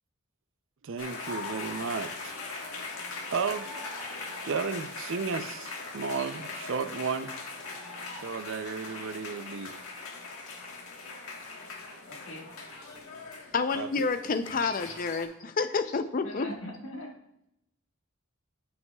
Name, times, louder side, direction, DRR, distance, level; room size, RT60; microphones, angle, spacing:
voice 1, 0.8-2.3 3.3-3.7 4.4-7.3 8.2-9.7 13.7-13.9, right 5 dB, 60° right, 11 dB, 0.5 m, -33 dB
sound 1, 1.0-15.3, left 3 dB, 80° left, 1.4 m, -40 dB
voice 2, 12.1-12.5 14.6-15.2 16.2-17.1, left 1 dB, 65° left, 0 dB, 1.6 m, -42 dB
voice 3, 13.5-16.5, left 4 dB, 40° left, 10 dB, 0.5 m, -29 dB
12.0 x 5.5 x 2.3 m, 0.82 s
head